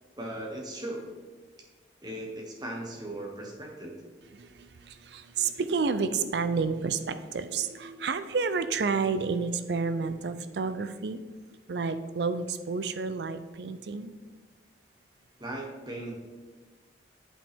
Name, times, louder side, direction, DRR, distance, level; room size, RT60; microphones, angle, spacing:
voice 1, 0.2-1.0 2.0-3.9 15.4-16.1, right 1 dB, 25° right, 0 dB, 1.2 m, -38 dB
voice 2, 5.1-11.2 11.7-14.1, right 4 dB, 70° right, 11 dB, 0.5 m, -30 dB
8.5 x 5.2 x 3.5 m, 1.3 s
head